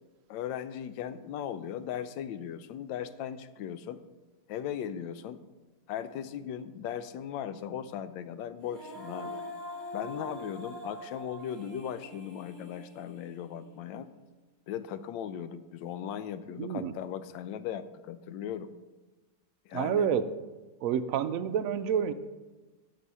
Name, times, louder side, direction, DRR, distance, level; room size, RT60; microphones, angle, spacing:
voice 1, 0.3-4.0 4.5-5.4 5.9-9.4 9.9-14.1 14.7-18.7 19.7-20.1, left 9 dB, 85° left, 13 dB, 1.3 m, -38 dB
Female singing, 8.6-13.8, left 1 dB, ahead, 2.5 m, -43 dB
voice 2, 16.6-16.9 19.7-20.3 20.8-22.1, right 8 dB, 80° right, 10 dB, 0.7 m, -28 dB
12.5 x 4.5 x 5.5 m, 1.2 s
omnidirectional pair, 2.0 m